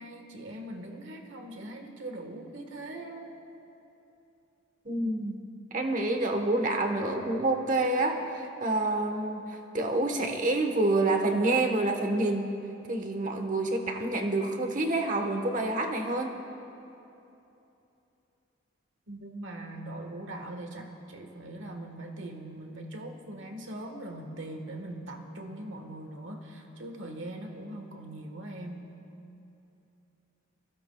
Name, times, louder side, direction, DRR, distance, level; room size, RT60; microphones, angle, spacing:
voice 1, 0.0-3.3 19.1-28.9, right 1 dB, 65° right, 3 dB, 1.5 m, -41 dB
voice 2, 4.8-5.4 5.7-12.4 12.9-16.3, right 2 dB, 40° right, 4 dB, 1.2 m, -28 dB
25.0 x 16.0 x 2.3 m, 2.9 s
head